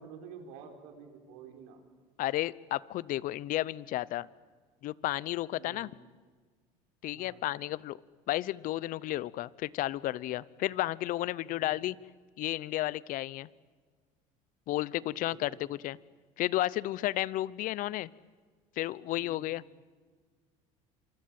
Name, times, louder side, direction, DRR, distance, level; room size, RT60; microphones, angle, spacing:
voice 1, 0.0-1.8 5.5-5.9 7.1-7.4 11.4-11.7 15.1-15.6 19.1-19.5, right 6 dB, 85° right, 4 dB, 4.6 m, -50 dB
voice 2, 2.2-4.3 4.8-5.9 7.0-8.0 8.3-12.0 12.4-13.5 14.7-16.0 16.4-18.1 18.8-19.6, left 15 dB, 60° left, 21 dB, 0.8 m, -32 dB
26.5 x 25.0 x 8.8 m, 1.5 s
supercardioid pair, 100°, 16 cm